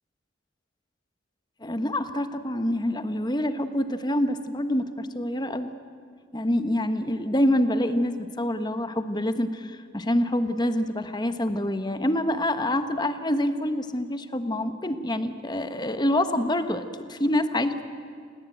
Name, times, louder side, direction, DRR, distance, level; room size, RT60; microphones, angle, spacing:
voice 1, 1.6-5.7 6.3-17.8, left 1 dB, 20° left, 10 dB, 1.2 m, -26 dB
27.5 x 19.5 x 9.1 m, 2.1 s
head